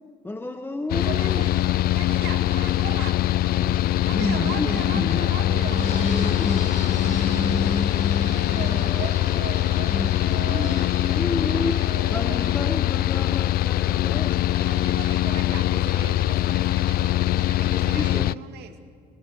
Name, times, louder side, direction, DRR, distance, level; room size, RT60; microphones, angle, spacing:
voice 1, 0.2-1.4 3.6-8.9 9.9-11.7 12.1-14.4 17.9-18.3, left 2 dB, 15° left, 7 dB, 1.3 m, -30 dB
Mechanical fan, 0.9-18.3, left 14 dB, 65° left, 0.5 m, -23 dB
voice 2, 0.9-3.3 4.0-6.1 8.2-13.0 13.8-14.0 14.5-18.8, right 9 dB, 75° right, 6 dB, 2.3 m, -39 dB
Fixed-wing aircraft airplane, 5.7-13.3, left 3 dB, 45° left, 7.9 m, -38 dB
27.5 x 18.0 x 7.8 m, 2.2 s
cardioid pair, 110°, 17 cm